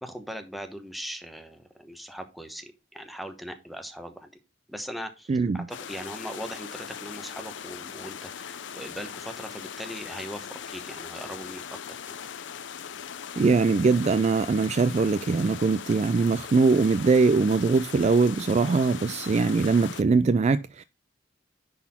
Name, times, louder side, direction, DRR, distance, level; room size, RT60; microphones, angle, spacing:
voice 1, 0.0-4.3 4.7-12.0, equal, ahead, 1.0 m, -40 dB
voice 2, 5.3-5.6 13.4-20.8, right 4 dB, 35° right, 0.3 m, -22 dB
sound 1, 5.7-20.0, left 8 dB, 75° left, 0.6 m, -40 dB
10.0 x 4.1 x 4.2 m
head